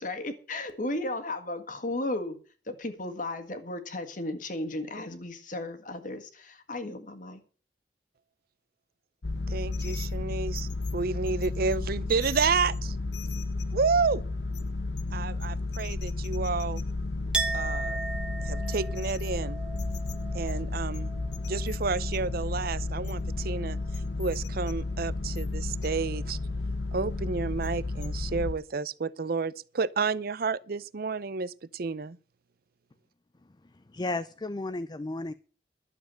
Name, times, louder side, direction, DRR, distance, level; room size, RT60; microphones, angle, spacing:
voice 1, 0.0-2.4 2.7-7.4, left 2 dB, 45° left, 1.7 m, -35 dB
sound 1, 9.2-28.5, left 2 dB, 80° left, 1.0 m, -32 dB
voice 2, 9.5-12.9 13.7-14.2 15.1-16.8 17.5-18.0 18.4-19.6 20.3-21.1 21.5-23.8 24.2-26.4 26.9-32.2, right 4 dB, 55° right, 0.6 m, -30 dB
Chink clink, 17.3-22.9 23.1-24.0, right 4 dB, 5° right, 1.0 m, -37 dB
voice 3, 33.6-35.3, left 2 dB, 25° left, 0.5 m, -34 dB
12.0 x 7.2 x 7.6 m
head